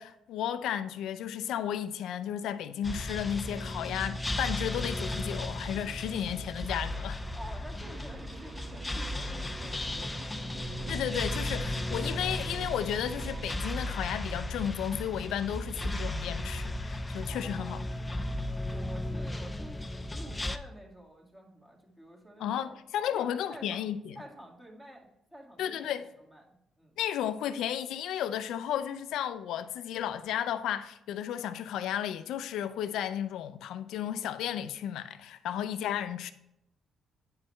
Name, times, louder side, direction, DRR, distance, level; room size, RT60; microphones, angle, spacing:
voice 1, 0.0-7.2 10.9-17.8 22.4-24.2 25.6-26.0 27.0-36.3, left 10 dB, 85° left, 0.5 m, -33 dB
sound 1, 2.8-20.6, left 1 dB, 15° left, 0.5 m, -35 dB
voice 2, 7.3-10.4 17.3-17.8 18.7-22.8 23.1-23.8 24.2-27.0, equal, 15° right, 2.0 m, -49 dB
sound 2, 7.8-13.5, right 4 dB, 40° right, 0.4 m, -44 dB
9.5 x 4.7 x 3.2 m
cardioid pair, 90°, 0 cm